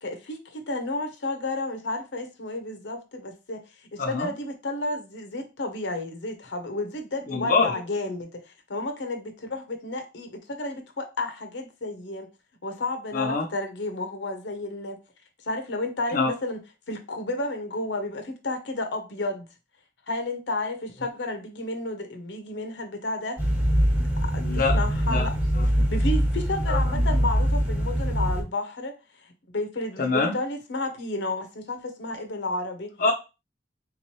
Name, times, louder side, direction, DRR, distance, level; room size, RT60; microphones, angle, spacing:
voice 1, 0.0-3.6 3.9-12.3 12.6-15.0 15.4-16.6 16.9-19.5 20.1-23.4 24.3-25.3 25.9-28.9 29.5-32.9, left 2 dB, 85° left, 6 dB, 0.8 m, -32 dB
voice 2, 4.0-4.3 7.3-7.7 13.1-13.5 16.1-16.3 24.4-24.8 25.1-25.3 25.6-25.7 26.7-26.8 30.0-30.3 33.0-33.1, left 4 dB, 50° left, 1 dB, 0.5 m, -24 dB
sound 1, 23.4-28.4, equal, 10° right, 0.9 m, -23 dB
3.5 x 3.0 x 3.0 m, 0.28 s
head